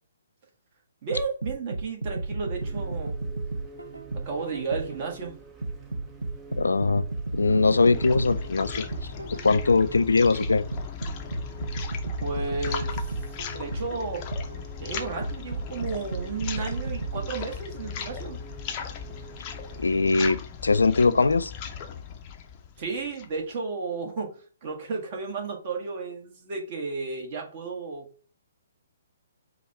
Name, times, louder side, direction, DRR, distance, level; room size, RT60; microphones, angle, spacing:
voice 1, 1.0-3.1 4.1-5.3 12.2-13.2 13.6-14.2 14.8-18.4 22.8-24.3 24.6-28.1, right 4 dB, 40° right, 1.3 m, -33 dB
sound 1, 1.1-5.1 5.6-9.9 10.4-14.7 15.2-17.3, right 2 dB, 80° right, 0.5 m, -33 dB
sound 2, 2.6-20.3, right 5 dB, 15° right, 0.6 m, -47 dB
voice 2, 6.6-7.0 7.3-8.9 9.4-10.7 19.8-21.5, left 3 dB, 75° left, 0.4 m, -21 dB
sound 3, 7.4-23.4, left 7 dB, 30° left, 0.6 m, -38 dB
4.9 x 2.3 x 4.2 m
figure-of-eight pair, 130°, 0 cm